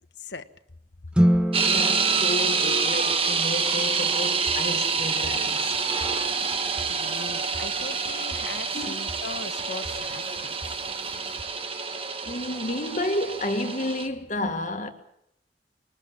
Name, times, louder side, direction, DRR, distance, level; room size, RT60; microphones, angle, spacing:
voice 1, 0.2-0.5 6.9-10.8, left 4 dB, 85° left, 1.3 m, -40 dB
sound 1, 1.1-3.5, equal, 5° right, 1.1 m, -25 dB
sound 2, 1.5-14.1, right 5 dB, 30° right, 1.6 m, -27 dB
voice 2, 1.6-5.7 8.7-9.0 12.3-14.9, left 1 dB, 45° left, 2.0 m, -31 dB
sound 3, 4.3-11.4, right 1 dB, 75° right, 6.9 m, -46 dB
22.0 x 20.0 x 7.5 m
head